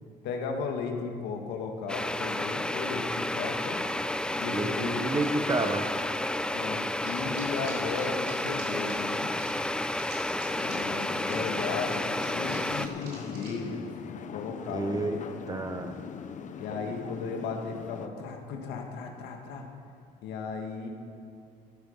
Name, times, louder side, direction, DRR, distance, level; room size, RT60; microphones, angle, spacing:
voice 1, 0.2-3.8 4.4-5.1 6.5-9.3 10.6-13.9 14.3-15.4 16.6-19.7 20.2-20.9, left 5 dB, 90° left, 2 dB, 2.0 m, -35 dB
sound 1, 1.9-12.9, left 1 dB, 5° left, 0.5 m, -31 dB
voice 2, 4.4-5.8 14.7-15.2 15.5-16.0, right 2 dB, 20° right, 7 dB, 1.2 m, -30 dB
sound 2, 4.4-13.5, right 4 dB, 80° right, 4.1 m, -49 dB
sound 3, 10.4-18.1, left 7 dB, 50° left, 0.9 m, -41 dB
14.5 x 12.0 x 5.7 m, 2.3 s
cardioid pair, 110°, 17 cm